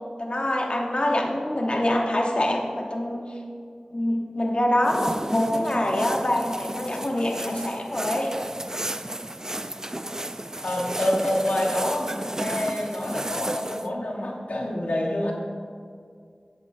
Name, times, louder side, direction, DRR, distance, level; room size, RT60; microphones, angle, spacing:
voice 1, 0.2-3.2 3.9-8.3, left 1 dB, 50° left, 0 dB, 1.0 m, -25 dB
sound 1, 4.8-13.9, right 1 dB, 25° right, 0.4 m, -33 dB
voice 2, 10.6-15.3, left 1 dB, 90° left, 0 dB, 1.2 m, -27 dB
11.5 x 8.3 x 2.6 m, 2.2 s
wide cardioid pair, 50°, 2 cm